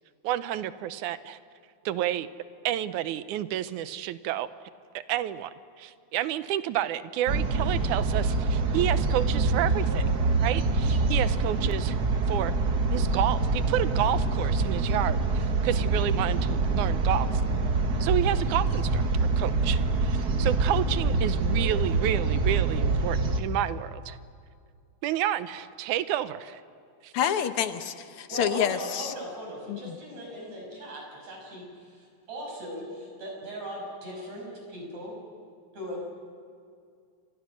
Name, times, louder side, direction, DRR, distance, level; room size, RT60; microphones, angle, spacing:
voice 1, 0.2-1.4 1.9-2.3 2.6-4.5 4.9-5.5 5.8-10.1 10.4-11.9 12.3-12.5 12.9-17.4 18.0-24.2 25.0-26.6 27.0-27.1, right 12 dB, 80° right, 14 dB, 2.2 m, -30 dB
sound 1, 7.3-23.4, right 3 dB, 45° right, 1.5 m, -25 dB
voice 2, 27.1-29.1 29.7-30.0, left 9 dB, 65° left, 10 dB, 1.4 m, -28 dB
voice 3, 28.3-35.1 35.7-36.0, equal, 65° right, -1 dB, 7.7 m, -39 dB
29.5 x 25.5 x 6.4 m, 2.3 s
omnidirectional pair, 3.5 m